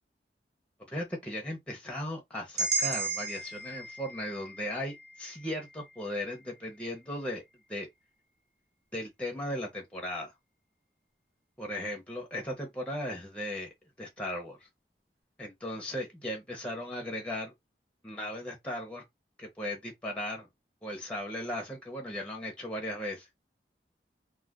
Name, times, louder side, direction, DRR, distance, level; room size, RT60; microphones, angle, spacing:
voice 1, 0.9-7.4 7.7-7.9 8.9-10.3 11.6-13.7 14.0-14.6 15.4-17.5 18.0-19.0 19.4-20.5 20.8-23.3, left 1 dB, 5° left, 0.7 m, -37 dB
sound 1, 2.6-6.6, right 4 dB, 65° right, 0.9 m, -35 dB
2.4 x 2.2 x 3.5 m
head